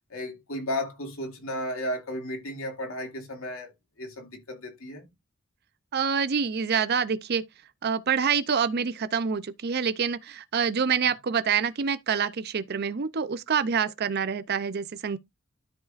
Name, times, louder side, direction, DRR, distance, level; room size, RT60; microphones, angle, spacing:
voice 1, 0.1-3.7 4.0-5.0, left 1 dB, 80° left, 2.5 m, -34 dB
voice 2, 5.9-7.4 7.8-15.2, right 6 dB, 50° right, 0.5 m, -26 dB
13.0 x 4.8 x 2.5 m
head